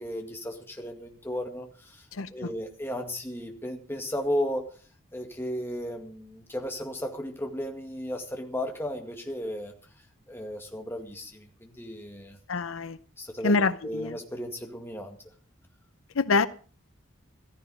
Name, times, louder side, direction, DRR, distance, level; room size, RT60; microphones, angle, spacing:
voice 1, 0.0-2.1 2.3-4.7 5.1-9.7 10.3-12.4 13.2-13.5 13.8-15.2, equal, 10° left, 2.0 m, -34 dB
voice 2, 2.1-2.5 12.5-13.0 13.4-14.1 16.1-16.5, left 4 dB, 80° left, 0.7 m, -25 dB
14.5 x 14.0 x 5.0 m
head